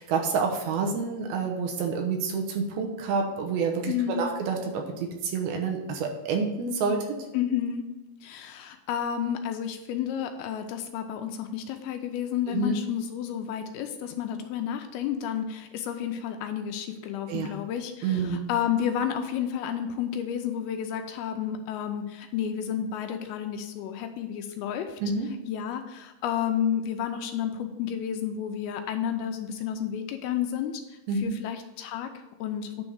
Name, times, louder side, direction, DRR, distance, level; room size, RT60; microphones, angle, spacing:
voice 1, 0.0-7.1 12.5-12.8 17.3-17.5 18.0-18.5 25.0-25.3 31.1-31.4, right 5 dB, 75° right, 2 dB, 2.7 m, -28 dB
voice 2, 3.9-4.3 7.3-7.8 8.2-25.0 25.5-30.8 31.2-32.8, left 9 dB, 85° left, 6 dB, 2.5 m, -31 dB
9.7 x 3.5 x 6.2 m, 1.0 s
omnidirectional pair, 4.7 m